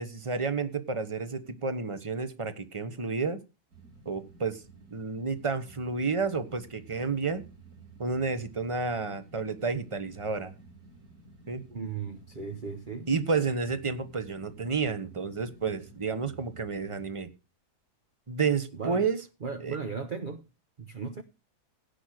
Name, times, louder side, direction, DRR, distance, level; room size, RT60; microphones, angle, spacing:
voice 1, 0.0-3.4 4.0-4.6 4.9-7.5 8.0-10.5 11.5-11.6 13.1-17.3 18.3-19.2 19.6-19.8, right 4 dB, 20° right, 1.2 m, -30 dB
sound 1, 3.7-17.1, right 4 dB, 75° right, 3.8 m, -53 dB
voice 2, 11.7-13.1 18.7-19.1 19.4-20.4 20.8-21.2, right 5 dB, 40° right, 1.0 m, -36 dB
17.0 x 5.9 x 6.5 m
omnidirectional pair, 1.6 m